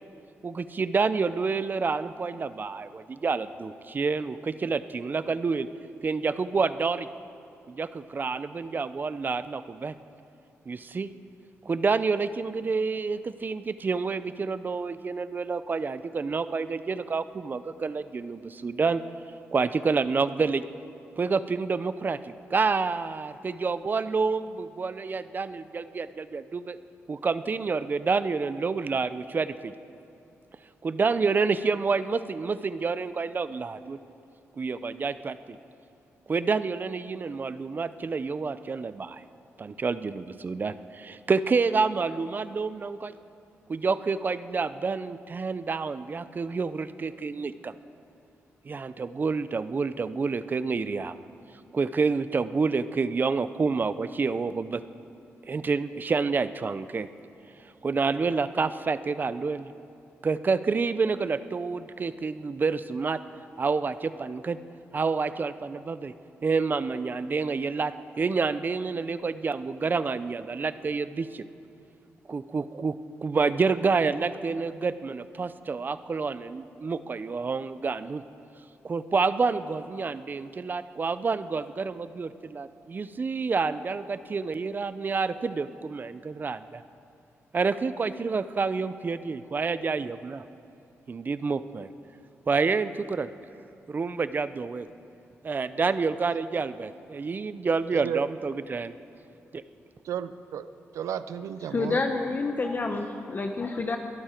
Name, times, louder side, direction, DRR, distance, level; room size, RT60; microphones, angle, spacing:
voice 1, 0.4-5.7 6.0-7.1 7.7-9.9 10.7-11.1 11.6-19.0 19.5-20.6 21.2-26.8 27.1-29.7 30.8-34.0 34.6-35.6 36.3-39.2 39.6-43.1 43.7-47.7 48.6-51.1 51.7-54.8 55.4-57.1 57.8-59.7 60.2-63.2 63.6-64.6 64.9-66.1 66.4-71.4 72.3-73.0 73.2-78.2 78.8-86.8 87.5-90.4 91.1-91.9 92.5-93.3 93.9-94.9 95.4-98.9 99.5-99.6, right 4 dB, 40° right, 13 dB, 0.5 m, -28 dB
voice 2, 97.9-98.2 100.0-100.7 100.9-102.0, right 9 dB, 90° right, 13 dB, 0.5 m, -33 dB
voice 3, 101.7-104.0, left 3 dB, 40° left, 5 dB, 0.8 m, -28 dB
22.0 x 12.0 x 4.5 m, 2.6 s
cardioid pair, 90°, 5 cm